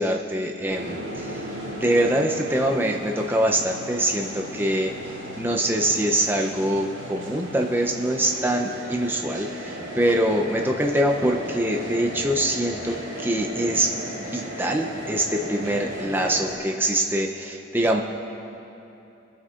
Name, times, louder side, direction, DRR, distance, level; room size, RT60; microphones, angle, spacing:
voice 1, 0.0-1.3 1.7-4.9 5.4-13.9 14.2-18.0, right 1 dB, 10° right, 1 dB, 0.5 m, -24 dB
sound 1, 0.7-16.6, equal, 85° right, 2.3 m, -36 dB
sound 2, 1.2-8.4, right 2 dB, 15° left, 1.0 m, -46 dB
21.5 x 7.9 x 2.4 m, 2.9 s
head